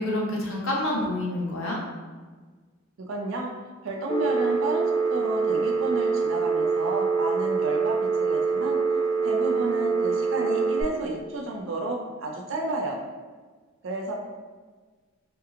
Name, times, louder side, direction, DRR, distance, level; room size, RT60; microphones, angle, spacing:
voice 1, 0.0-1.8, left 1 dB, 70° left, -2 dB, 0.6 m, -27 dB
voice 2, 3.0-3.5 3.8-8.8 9.2-13.0 13.8-14.1, right 2 dB, 65° right, 1 dB, 0.4 m, -31 dB
Telephone, 4.1-10.8, right 5 dB, 20° left, 0.3 m, -25 dB
3.0 x 2.2 x 2.3 m, 1.4 s
head